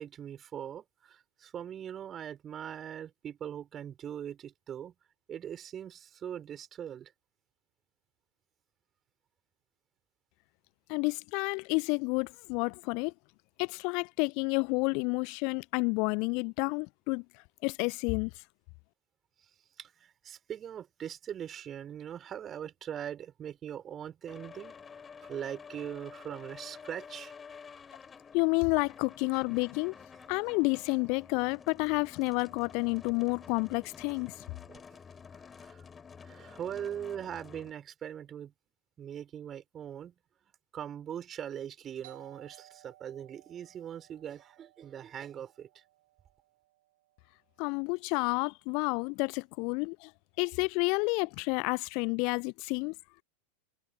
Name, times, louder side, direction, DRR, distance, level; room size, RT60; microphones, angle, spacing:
voice 1, 0.0-4.9 5.3-7.1 19.8-24.8 25.3-27.3 34.7-34.8 35.6-35.8 36.2-38.5 39.0-40.1 40.7-45.7, right 9 dB, 25° right, 5.6 m, -41 dB
voice 2, 10.9-13.1 13.6-17.2 17.6-18.3 28.3-29.9 30.3-34.3 47.6-50.1 50.4-52.9, left 33 dB, 45° left, 0.7 m, -30 dB
sound 1, 24.3-37.7, left 6 dB, 20° left, 4.4 m, -50 dB
Doorbell, 42.0-47.4, right 16 dB, 55° right, 5.8 m, -59 dB
figure-of-eight pair, 90°, 0 cm